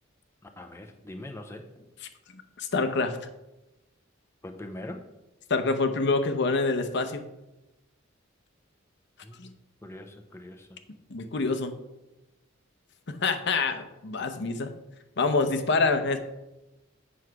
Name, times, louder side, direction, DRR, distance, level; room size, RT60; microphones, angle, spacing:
voice 1, 0.6-1.8 4.4-5.1 9.2-9.4 9.8-10.7, left 1 dB, 15° left, 5 dB, 0.6 m, -42 dB
voice 2, 2.6-3.2 5.5-7.3 9.4-9.5 11.1-11.8 13.1-14.7 15.2-16.2, left 3 dB, 60° left, 8 dB, 0.8 m, -26 dB
8.0 x 6.2 x 4.7 m, 0.96 s
head